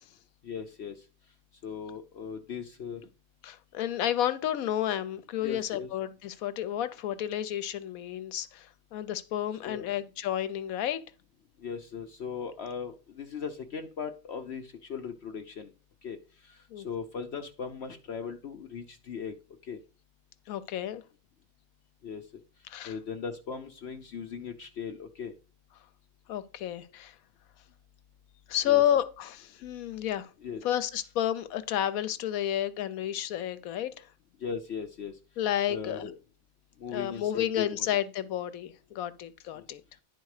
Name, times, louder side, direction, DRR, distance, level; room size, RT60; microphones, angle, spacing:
voice 1, 0.4-0.9 1.6-3.0 5.4-5.9 9.6-9.9 11.6-15.7 16.0-16.2 16.8-19.3 19.7-19.8 22.0-22.2 22.9-25.3 28.7-28.8 30.4-30.6 34.4-35.1 35.7-36.1 36.8-37.6 39.6-39.7, left 6 dB, 60° left, 0.9 m, -38 dB
voice 2, 3.4-11.0 16.7-16.9 20.5-21.0 22.7-22.9 26.3-27.1 28.5-30.3 30.6-34.1 35.4-36.1 36.9-39.8, left 11 dB, 80° left, 1.1 m, -31 dB
10.5 x 4.3 x 4.8 m
omnidirectional pair, 1.5 m